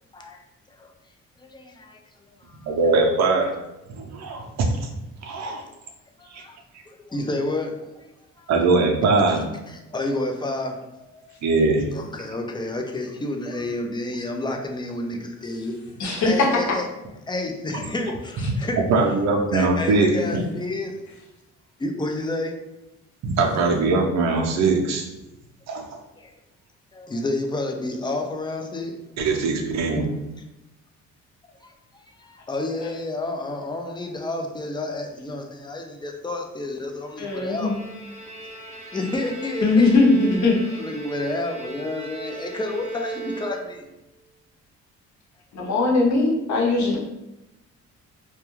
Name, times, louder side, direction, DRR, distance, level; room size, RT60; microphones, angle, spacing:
voice 1, 1.4-2.0 2.3-2.8 5.4-5.7 6.2-6.6 7.1-8.1 8.4-8.5 9.3-11.3 11.9-15.8 16.2-16.9 17.3-18.8 19.5-21.0 21.8-22.6 26.2-26.3 26.9-29.0 31.6-31.7 32.2-37.7 38.9-39.9 40.8-43.9, left 2 dB, 15° left, 3 dB, 0.4 m, -30 dB
voice 2, 2.7-3.6 3.9-4.9 5.2-5.6 6.3-6.4 8.5-9.4 11.4-11.8 18.9-20.4 23.2-25.0 25.7-26.0 29.2-30.1, right 3 dB, 65° right, 2 dB, 0.6 m, -21 dB
voice 3, 16.0-16.5 32.8-32.9 37.2-37.8 39.6-40.8 45.5-47.0, left 3 dB, 70° left, -2 dB, 0.8 m, -20 dB
Bowed string instrument, 37.0-44.0, right 2 dB, 25° right, 0.6 m, -38 dB
2.2 x 2.2 x 3.0 m, 0.94 s
cardioid pair, 90°, 30 cm